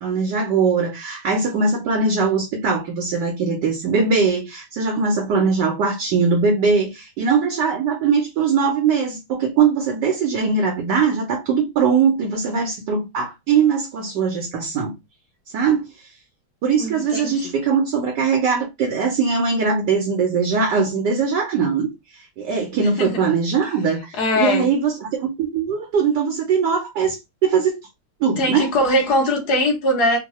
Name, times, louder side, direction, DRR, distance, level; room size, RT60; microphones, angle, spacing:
voice 1, 0.0-14.9 15.5-15.9 16.6-21.9 22.4-27.8 28.2-28.7, right 5 dB, 70° right, 1.1 m, -21 dB
voice 2, 16.8-17.4 22.8-23.2 24.1-24.7 28.4-30.2, left 1 dB, 55° left, 1.3 m, -21 dB
3.7 x 2.2 x 2.9 m
omnidirectional pair, 2.4 m